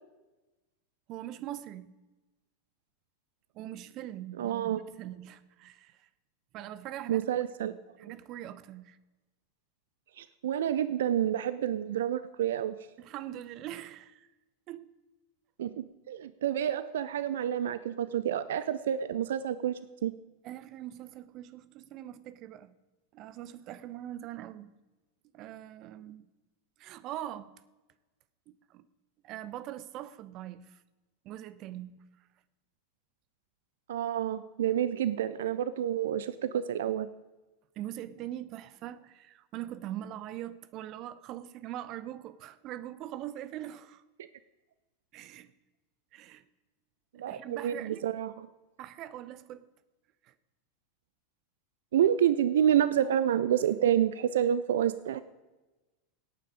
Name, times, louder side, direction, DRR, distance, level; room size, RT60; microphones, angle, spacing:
voice 1, 1.1-1.9 3.5-6.1 6.5-9.0 13.0-14.3 14.7-14.9 20.4-22.7 23.1-24.7 25.3-26.3 26.8-27.5 28.5-28.9 29.2-30.8 31.2-32.0 37.8-44.0 45.1-45.5 46.1-46.4 47.1-48.1 48.8-49.7 50.2-50.3, right 12 dB, 40° right, 0.8 m, -42 dB
voice 2, 4.4-4.8 7.1-7.7 8.0-8.1 10.2-12.8 15.6-20.1 33.9-37.1 47.1-48.5 51.9-55.2, right 10 dB, 60° right, 0.5 m, -28 dB
17.5 x 9.2 x 5.1 m
figure-of-eight pair, 85°, 0 cm